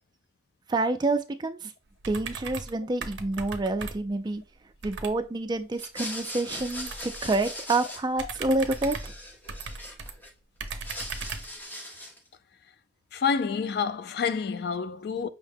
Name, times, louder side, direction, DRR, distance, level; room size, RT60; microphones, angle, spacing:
voice 1, 0.7-1.7 2.1-4.4 4.8-9.1, right 2 dB, 25° right, 0.3 m, -28 dB
sound 1, 2.0-2.8 3.0-4.2 4.8-5.2 6.6-7.5 8.1-10.1 10.6-11.6, right 4 dB, 70° right, 0.5 m, -38 dB
sound 2, 5.7-8.4 8.6-10.3 10.6-12.3, left 1 dB, 10° left, 0.6 m, -40 dB
voice 2, 13.1-15.3, left 6 dB, 55° left, 0.3 m, -28 dB
5.5 x 2.1 x 3.4 m
head